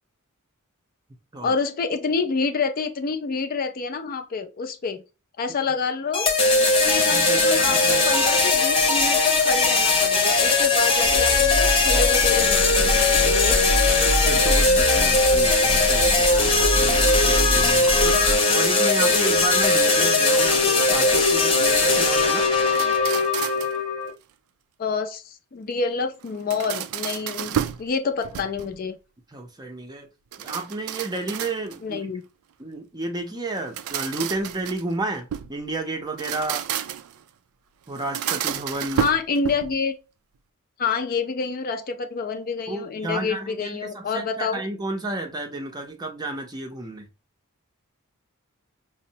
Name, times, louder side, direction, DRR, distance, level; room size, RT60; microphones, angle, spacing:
voice 1, 1.4-5.0 5.4-6.3 6.8-13.6 24.8-29.0 31.8-32.2 39.0-39.9 40.8-44.6, left 4 dB, 40° left, 0.4 m, -27 dB
sound 1, 6.1-24.1, left 3 dB, 25° left, 0.8 m, -19 dB
voice 2, 7.1-8.1 14.2-18.2 18.5-22.5 29.3-30.1 30.4-32.0 32.6-36.6 37.9-39.1 42.7-47.0, right 2 dB, 20° right, 0.5 m, -32 dB
sound 2, 11.0-18.4, left 1 dB, 80° left, 0.6 m, -26 dB
sound 3, 22.6-23.8 26.2-27.9 28.2-28.8 30.3-31.9 33.5-35.6 36.1-37.2 38.0-39.8, right 10 dB, 70° right, 0.3 m, -31 dB
5.3 x 2.0 x 2.7 m
head